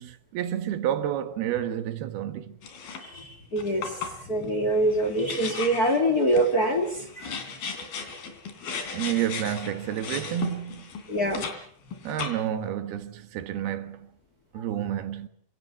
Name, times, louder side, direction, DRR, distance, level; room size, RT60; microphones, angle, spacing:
voice 1, 0.0-2.6 8.9-10.9 12.0-14.1 14.5-15.3, right 11 dB, 85° right, 3.5 m, -30 dB
sound 1, 2.6-3.2 3.6-11.6 11.9-12.7, left 6 dB, 80° left, 5.0 m, -36 dB
voice 2, 3.0-7.4 11.1-11.5 14.6-14.7, right 1 dB, 30° left, 2.1 m, -25 dB
27.5 x 17.0 x 8.5 m
omnidirectional pair, 4.3 m